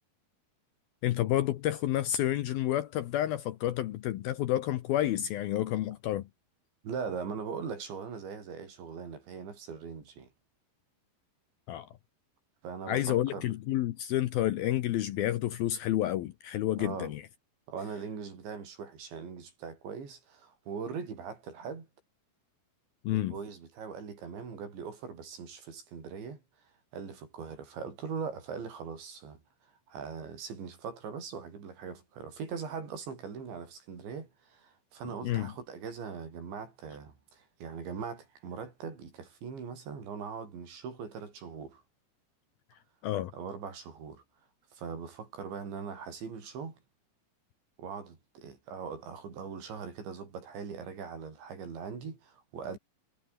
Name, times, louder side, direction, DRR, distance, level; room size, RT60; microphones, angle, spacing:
voice 1, 1.0-6.3 11.7-11.9 12.9-17.2 23.0-23.4 35.2-35.5 43.0-43.3, left 13 dB, 70° left, 2.4 m, -30 dB
voice 2, 6.8-10.3 12.6-13.5 16.8-17.1 17.7-21.9 23.1-26.4 26.9-29.4 29.9-41.8 43.3-44.2 44.7-46.8 47.8-52.8, right 6 dB, 75° right, 8.0 m, -41 dB
omnidirectional pair, 5.3 m